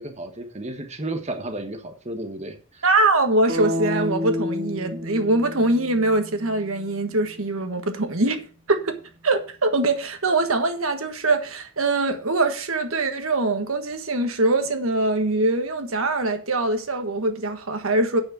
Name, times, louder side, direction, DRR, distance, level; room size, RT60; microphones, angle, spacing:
voice 1, 0.0-2.8, right 1 dB, 30° right, 1.3 m, -33 dB
voice 2, 2.8-8.4 8.7-9.0 9.2-18.2, right 2 dB, 70° right, 1.5 m, -23 dB
sound 1, 3.5-7.5, left 1 dB, 50° right, 2.9 m, -30 dB
8.7 x 6.5 x 6.9 m
head